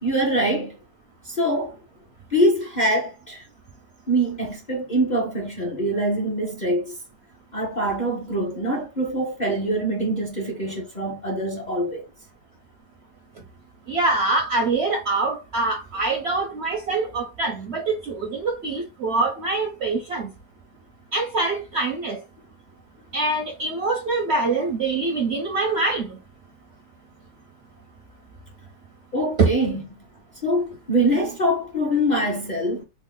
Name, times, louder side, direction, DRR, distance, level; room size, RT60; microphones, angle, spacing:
voice 1, 0.0-0.8 1.2-1.7 2.3-3.4 4.1-6.9 7.5-12.0 29.1-29.8 30.4-32.8, right 1 dB, 40° left, 0.6 m, -24 dB
voice 2, 13.9-20.3 21.1-22.2 23.1-26.1 29.4-29.5, right 3 dB, 65° right, 0.6 m, -24 dB
3.5 x 2.1 x 3.6 m
omnidirectional pair, 1.7 m